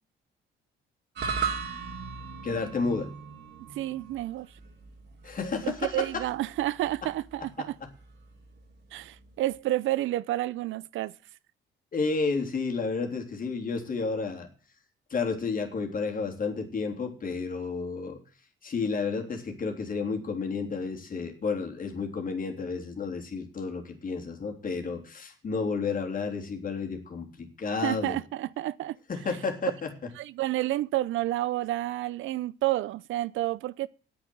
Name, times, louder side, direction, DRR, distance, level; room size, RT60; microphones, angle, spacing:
sound 1, 1.1-9.6, right 6 dB, 65° right, 3.6 m, -38 dB
voice 1, 2.4-3.1 5.2-6.2 7.6-7.7 11.9-14.5 15.1-18.2 18.6-28.2 29.1-29.9, left 4 dB, 45° left, 3.3 m, -31 dB
voice 2, 3.8-4.5 5.6-7.8 8.9-11.1 27.8-29.0 30.2-33.9, right 15 dB, 80° right, 0.6 m, -30 dB
8.8 x 8.7 x 7.8 m
cardioid pair, 90°, 20 cm